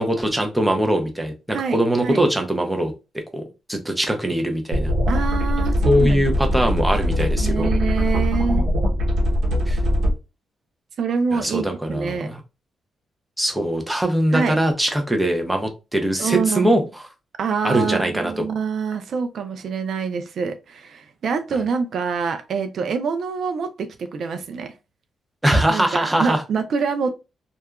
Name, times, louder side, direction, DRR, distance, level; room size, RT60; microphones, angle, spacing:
voice 1, 0.0-2.9 3.3-3.4 3.7-4.9 5.8-7.7 9.7-9.8 11.3-12.4 13.4-16.8 17.6-18.4 25.4-26.4, right 1 dB, 5° right, 0.6 m, -21 dB
voice 2, 1.5-2.2 5.1-6.2 6.5-6.7 7.4-8.7 11.0-12.3 14.3-14.6 16.2-16.8 17.4-24.7 25.7-27.1, right 5 dB, 60° right, 0.3 m, -26 dB
sound 1, 4.7-10.1, equal, 85° right, 0.8 m, -21 dB
2.7 x 2.3 x 2.3 m
cardioid pair, 115°, 0 cm